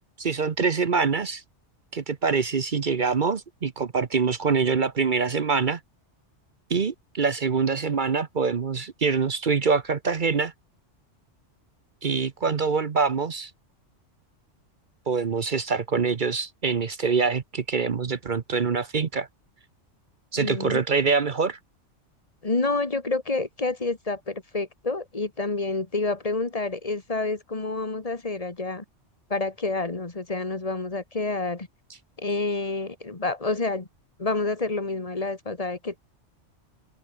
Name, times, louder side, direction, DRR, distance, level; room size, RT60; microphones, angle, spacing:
voice 1, 0.2-1.4 1.9-5.8 6.7-10.5 12.0-13.5 15.1-19.3 20.3-21.6, right 5 dB, 45° right, 1.0 m, -25 dB
voice 2, 20.4-20.8 22.4-28.8 29.3-31.7 32.2-33.9 34.2-36.0, left 3 dB, 30° left, 2.1 m, -28 dB
open air
omnidirectional pair, 1.2 m